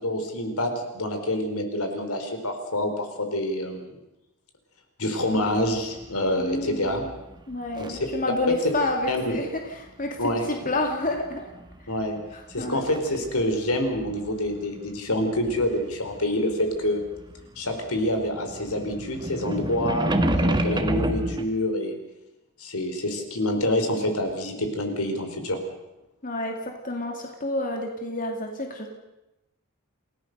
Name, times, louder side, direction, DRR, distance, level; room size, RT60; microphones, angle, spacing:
voice 1, 0.0-4.0 5.0-7.1 7.8-8.1 8.5-8.6 9.1-9.3 10.2-10.4 11.9-12.2 12.5-17.0 17.6-22.0 22.6-25.6, left 1 dB, 80° left, 5 dB, 4.1 m, -27 dB
sound 1, 5.4-8.2 8.5-9.7 10.5-12.0 12.3-17.4 17.7-21.4, right 1 dB, 20° right, 1.5 m, -29 dB
voice 2, 6.4-6.9 7.5-11.4 12.6-12.9 26.2-28.9, left 2 dB, 35° left, 3 dB, 2.4 m, -29 dB
28.5 x 17.0 x 6.7 m, 0.96 s
head